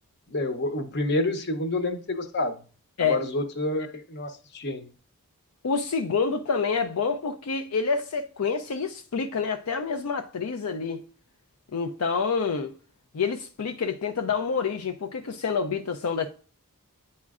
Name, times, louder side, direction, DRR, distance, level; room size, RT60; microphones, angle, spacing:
voice 1, 0.3-2.6 3.0-4.9, left 2 dB, 50° left, 0.8 m, -28 dB
voice 2, 5.6-11.0 11.7-12.7 13.1-16.3, left 5 dB, 75° left, 0.5 m, -27 dB
9.4 x 4.3 x 2.4 m
head